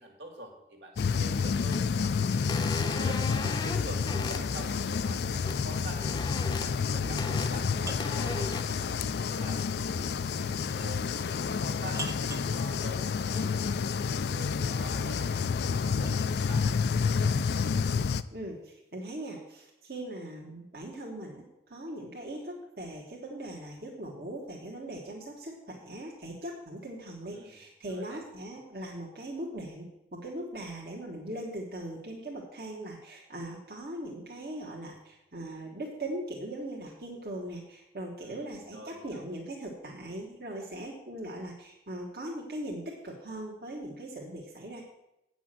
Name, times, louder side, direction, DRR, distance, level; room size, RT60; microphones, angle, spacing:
voice 1, 0.0-6.0 6.5-16.6 17.0-17.3 27.3-27.6 27.9-28.2 38.2-39.2, right 1 dB, 85° right, 2 dB, 2.3 m, -47 dB
sound 1, 1.0-18.2, left 5 dB, 70° left, 0.4 m, -29 dB
sound 2, 1.7-1.8 2.5-4.4 5.4-5.6 5.9-6.7 7.2-7.5 8.0-8.6, left 2 dB, 25° left, 0.7 m, -37 dB
sound 3, 7.7-8.3 10.7-11.0 11.9-12.6 14.8-16.4, right 3 dB, 15° right, 0.5 m, -43 dB
voice 2, 18.3-44.8, right 1 dB, 60° right, -2 dB, 1.5 m, -40 dB
8.8 x 6.1 x 7.5 m, 0.87 s
head